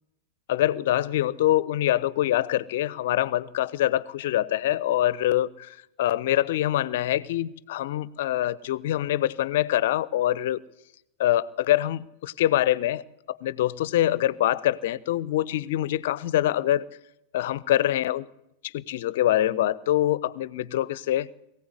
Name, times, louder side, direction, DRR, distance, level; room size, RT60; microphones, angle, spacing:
voice 1, 0.5-10.6 11.2-13.0 13.3-16.8 17.3-18.3 18.6-21.3, left 13 dB, 55° left, 21 dB, 0.8 m, -25 dB
22.5 x 16.0 x 9.7 m, 0.87 s
figure-of-eight pair, 90°, 0 cm